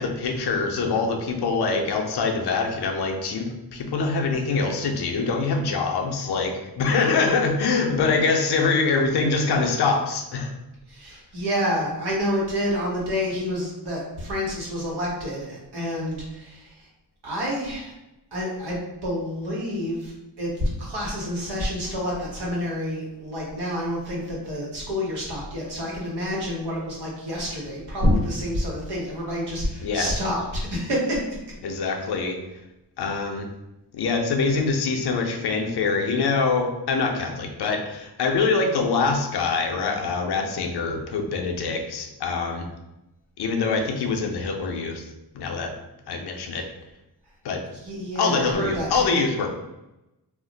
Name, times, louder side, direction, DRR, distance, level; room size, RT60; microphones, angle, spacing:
voice 1, 0.0-10.5 29.8-30.1 31.6-32.4 33.0-33.5 33.9-42.7 43.4-45.0 45.3-45.7 46.1-46.6 47.4-47.6 48.2-49.5, left 4 dB, 80° left, 3 dB, 0.6 m, -24 dB
voice 2, 10.9-16.6 17.2-17.9 18.3-31.2 47.8-49.2, equal, 85° right, -4 dB, 1.1 m, -28 dB
2.4 x 2.1 x 3.8 m, 0.94 s
wide cardioid pair, 110°, 39 cm